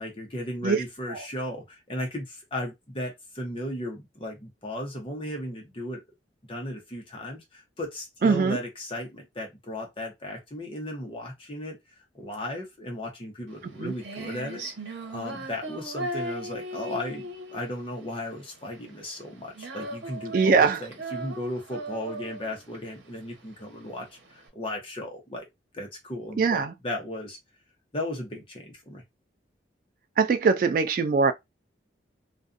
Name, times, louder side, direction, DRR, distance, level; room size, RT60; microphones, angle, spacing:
voice 1, 0.0-6.0 6.5-11.8 12.1-14.7 15.1-25.5 25.7-27.4 27.9-29.0, left 1 dB, 30° left, 0.8 m, -35 dB
voice 2, 8.2-8.6 13.8-13.9 20.3-20.9 26.4-26.7 30.2-31.3, right 5 dB, 50° right, 0.3 m, -22 dB
Female singing, 13.5-24.5, right 1 dB, 80° right, 0.9 m, -38 dB
2.5 x 2.3 x 2.5 m
head